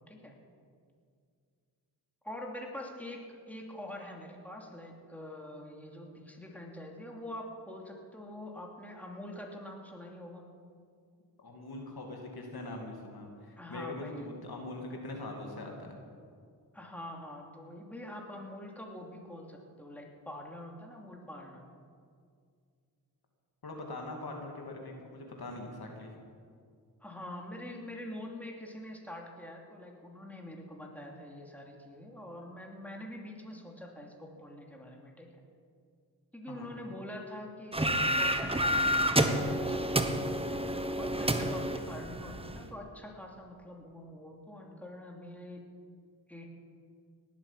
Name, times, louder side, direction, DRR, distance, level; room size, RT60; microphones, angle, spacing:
voice 1, 2.2-10.4 13.6-14.3 16.7-21.6 27.0-35.3 36.3-40.2 41.0-45.6 46.3-46.5, left 1 dB, 5° left, 0 dB, 3.0 m, -45 dB
voice 2, 11.4-16.0 23.6-26.1 36.5-36.7, left 2 dB, 60° left, 1 dB, 2.7 m, -42 dB
sound 1, 37.7-42.6, right 1 dB, 15° right, 1.3 m, -29 dB
18.5 x 8.2 x 7.5 m, 2.2 s
cardioid pair, 45°, 41 cm